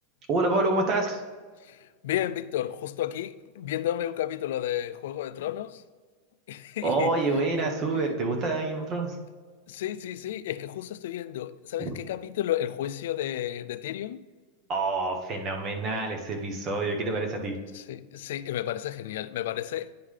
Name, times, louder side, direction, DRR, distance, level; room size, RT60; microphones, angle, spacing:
voice 1, 0.3-1.2 6.8-9.2 11.8-11.9 14.7-17.6, right 2 dB, 30° right, 1.0 m, -27 dB
voice 2, 1.6-5.8 6.5-7.2 9.7-14.2 17.7-19.9, left 12 dB, 70° left, 0.3 m, -32 dB
10.0 x 3.8 x 3.3 m
supercardioid pair, 155°, 0 cm